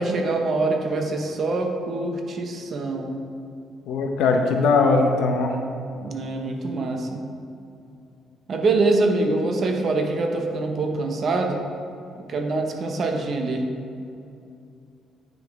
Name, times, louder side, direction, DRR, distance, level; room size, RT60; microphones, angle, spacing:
voice 1, 0.0-3.2 6.0-7.2 8.5-11.6 12.3-13.7, right 3 dB, 50° right, 3 dB, 0.8 m, -24 dB
voice 2, 3.9-5.6, left 3 dB, 85° left, 3 dB, 0.7 m, -20 dB
9.3 x 3.9 x 3.6 m, 2.6 s
cardioid pair, 115°, 0 cm